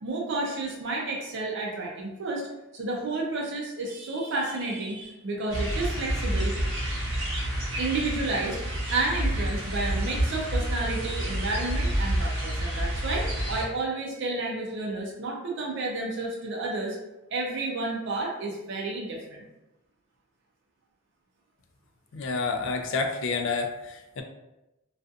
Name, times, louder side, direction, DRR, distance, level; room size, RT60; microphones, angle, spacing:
voice 1, 0.0-2.5 2.7-6.5 7.8-8.6 8.9-17.0 17.3-19.5, right 2 dB, 60° right, -1 dB, 0.5 m, -31 dB
sound 1, 5.5-13.6, right 1 dB, 75° right, 0.9 m, -29 dB
voice 2, 22.1-24.2, left 4 dB, 60° left, 4 dB, 0.3 m, -29 dB
2.6 x 2.3 x 2.3 m, 0.96 s
head